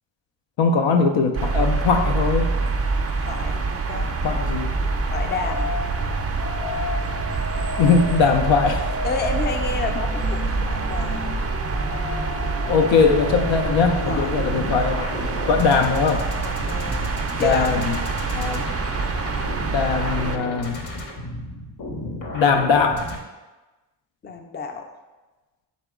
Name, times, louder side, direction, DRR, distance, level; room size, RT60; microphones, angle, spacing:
voice 1, 0.6-2.5 4.2-4.7 7.8-8.9 12.7-15.1 15.5-16.3 17.4-18.0 18.3-18.8 19.7-20.8 22.3-23.0, left 5 dB, 80° left, 5 dB, 0.5 m, -20 dB
sound 1, 1.3-20.4, right 4 dB, 35° right, 0.5 m, -26 dB
voice 2, 3.2-4.1 5.0-5.7 9.0-11.3 14.1-14.3 16.4-17.1 17.4-18.3 24.2-24.8, left 4 dB, 25° left, 5 dB, 0.4 m, -30 dB
sound 2, 3.9-23.2, left 2 dB, 45° left, 0.9 m, -32 dB
4.2 x 3.0 x 3.6 m, 1.2 s
cardioid pair, 50°, 45 cm